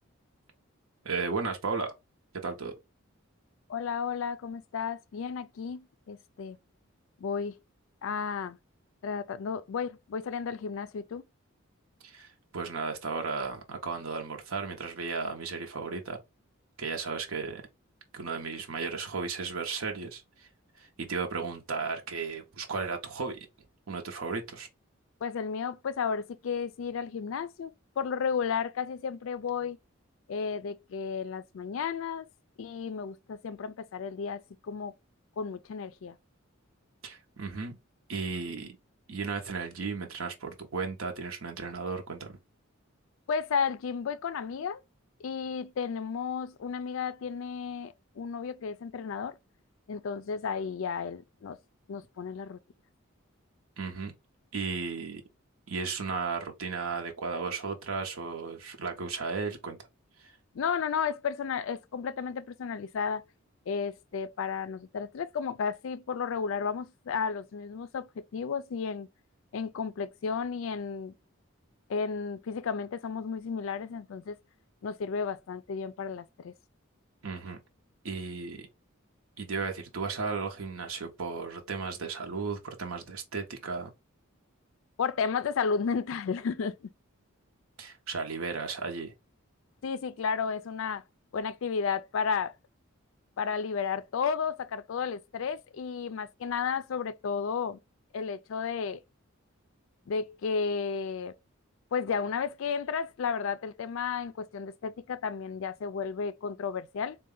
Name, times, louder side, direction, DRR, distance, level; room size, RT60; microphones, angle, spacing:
voice 1, 1.0-1.9 2.3-2.7 12.0-16.2 16.8-17.6 18.1-20.5 20.8-23.4 23.9-24.7 37.0-37.8 38.1-38.8 39.1-42.4 53.8-54.1 54.5-55.2 55.7-59.8 60.2-60.3 77.2-77.6 78.0-78.7 79.4-83.9 87.8-89.1, right 4 dB, 85° right, 0.8 m, -35 dB
voice 2, 3.7-6.6 7.2-7.5 8.0-8.6 9.0-11.2 25.2-29.8 30.3-32.3 32.6-34.9 35.4-36.2 43.3-44.8 45.2-49.4 49.9-51.6 51.9-52.6 60.5-63.2 63.7-69.1 69.5-71.1 71.9-74.4 74.8-76.5 85.0-86.7 89.8-91.0 91.3-92.5 93.4-97.8 98.1-99.0 100.1-101.3 101.9-107.2, left 6 dB, 65° left, 0.4 m, -33 dB
3.7 x 2.2 x 3.6 m
head